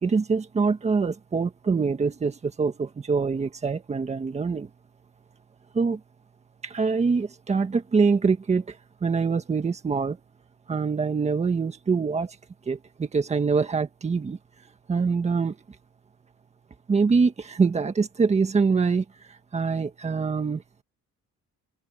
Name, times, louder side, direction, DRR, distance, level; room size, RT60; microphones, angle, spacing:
voice 1, 0.0-4.7 5.7-6.0 6.6-10.2 10.7-12.4 12.6-14.4 14.9-15.6 16.9-20.6, right 5 dB, 20° right, 1.6 m, -24 dB
cardioid pair, 180°, 29 cm